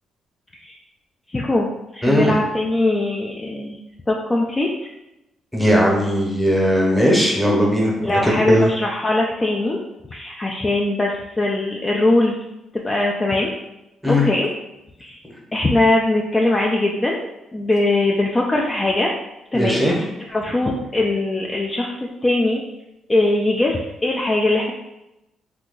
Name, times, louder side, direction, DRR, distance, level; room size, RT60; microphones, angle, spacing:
voice 1, 1.3-3.8 4.1-4.7 8.0-9.8 10.1-12.4 12.8-13.5 14.1-14.5 15.0-15.2 15.5-17.2 17.5-19.1 19.5-21.9 22.2-22.6 23.1-24.7, left 2 dB, 20° left, -2 dB, 0.4 m, -21 dB
voice 2, 2.0-2.4 5.5-8.7 14.0-14.2 19.5-19.9, equal, ahead, -2 dB, 0.9 m, -18 dB
2.9 x 2.3 x 3.7 m, 0.93 s
cardioid pair, 90°, 0 cm